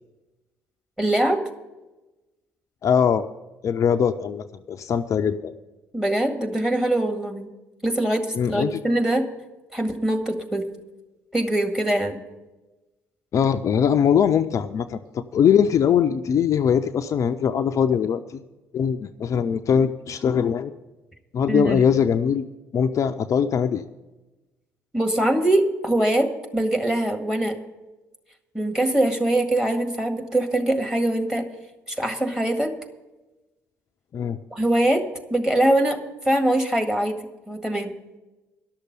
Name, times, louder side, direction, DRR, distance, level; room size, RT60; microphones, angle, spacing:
voice 1, 1.0-1.4 5.9-7.5 7.8-9.3 9.7-10.7 11.3-12.2 21.5-21.9 24.9-27.5 28.5-31.5 31.9-32.7 34.5-36.0 36.2-37.2 37.5-38.0, right 1 dB, 5° right, 6 dB, 1.8 m, -23 dB
voice 2, 2.8-3.3 3.6-5.5 8.3-8.8 13.3-18.4 18.7-20.7 21.3-22.4 22.7-23.8 34.1-34.4, left 7 dB, 45° left, 8 dB, 0.5 m, -21 dB
11.5 x 6.6 x 9.4 m, 1.1 s
figure-of-eight pair, 50°, 8 cm